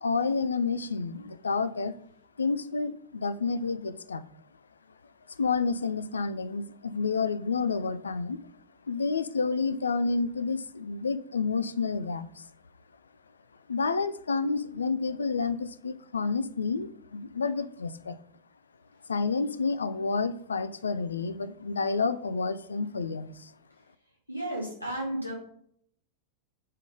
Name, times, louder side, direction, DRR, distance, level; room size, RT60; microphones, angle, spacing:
voice 1, 0.0-1.9 2.4-4.2 5.4-8.4 8.9-12.3 13.7-18.2 19.1-23.3, left 4 dB, 75° left, 0.4 m, -29 dB
voice 2, 24.3-25.3, right 1 dB, 90° right, 1.7 m, -33 dB
5.4 x 3.7 x 4.9 m
figure-of-eight pair, 90°, 0 cm